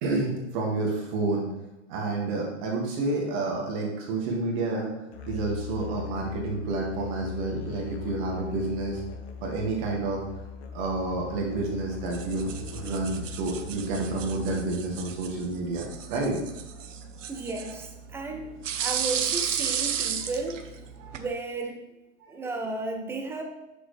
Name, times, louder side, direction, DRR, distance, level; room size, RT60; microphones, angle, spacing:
voice 1, 0.0-1.5 1.9-4.9 5.3-9.0 9.4-10.2 10.7-16.4 16.7-16.9 21.0-21.1 22.2-22.3, right 3 dB, 40° right, -1 dB, 1.9 m, -29 dB
Musical instrument, 5.1-14.9, left 9 dB, 60° left, 1.2 m, -40 dB
sound 1, 12.1-21.3, right 8 dB, 85° right, 0.9 m, -34 dB
voice 2, 17.3-18.5 18.8-20.6 21.1-21.8 22.3-23.4, right 3 dB, 5° right, 2 dB, 0.7 m, -33 dB
7.6 x 6.6 x 3.3 m, 1.0 s
hypercardioid pair, 145°, 37 cm